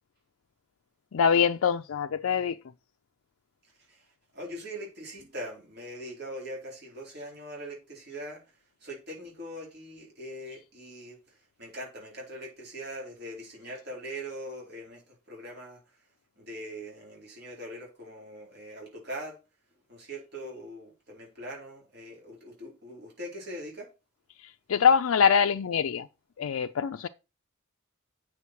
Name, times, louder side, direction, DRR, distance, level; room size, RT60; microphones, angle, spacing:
voice 1, 1.1-2.6 24.7-26.1 26.4-27.1, left 7 dB, 80° left, 0.4 m, -24 dB
voice 2, 4.3-8.4 8.8-11.2 11.6-15.0 15.3-15.8 16.4-19.4 19.9-23.9, equal, 50° right, 4.1 m, -41 dB
8.3 x 6.5 x 4.6 m
head